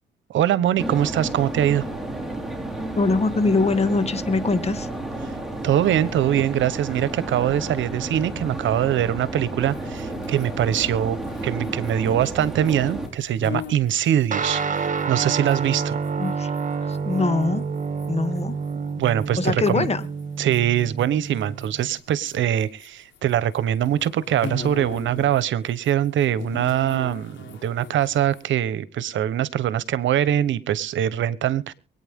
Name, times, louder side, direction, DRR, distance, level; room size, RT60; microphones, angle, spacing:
voice 1, 0.3-1.8 5.6-11.2 11.4-16.0 19.0-19.9 20.4-31.7, right 11 dB, 70° right, 17 dB, 1.1 m, -23 dB
sound 1, 0.8-13.1, right 2 dB, ahead, 4.7 m, -32 dB
voice 2, 3.0-4.9 16.2-16.5 16.9-17.6 18.1-18.5 19.4-20.1, left 3 dB, 30° left, 10 dB, 2.0 m, -22 dB
sound 2, 9.7-16.6 16.9-22.9 23.1-25.4 25.7-28.5, left 4 dB, 70° left, 3.8 m, -40 dB
Guitar, 14.3-22.0, right 5 dB, 40° right, 1.8 m, -28 dB
23.5 x 9.3 x 3.7 m, 0.35 s
cardioid pair, 90°, 20 cm